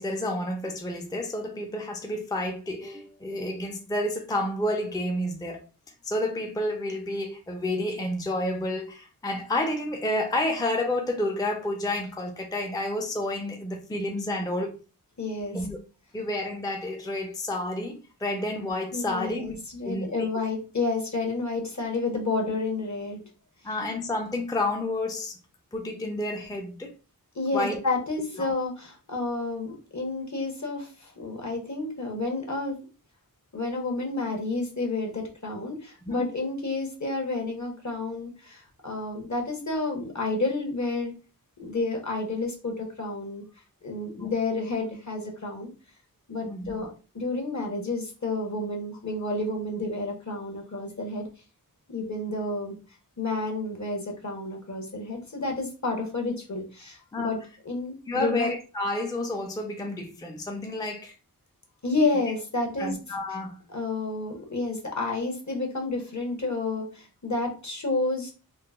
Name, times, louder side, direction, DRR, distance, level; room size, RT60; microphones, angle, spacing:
voice 1, 0.0-5.7 6.0-14.8 15.5-15.8 16.1-19.6 19.8-20.3 23.6-25.4 25.7-26.9 27.5-27.8 28.4-28.5 36.1-36.3 44.2-44.3 46.5-46.8 57.1-57.4 58.1-61.1 62.8-63.6, left 1 dB, 10° left, 0.4 m, -30 dB
voice 2, 15.2-15.6 18.9-23.2 27.3-32.8 33.5-41.1 41.6-43.4 43.8-45.7 46.3-46.9 47.1-51.3 51.9-52.8 53.2-57.4 57.6-58.5 61.8-63.0 63.7-68.3, left 3 dB, 50° left, 1.0 m, -30 dB
3.7 x 2.0 x 2.3 m
wide cardioid pair, 60°, 37 cm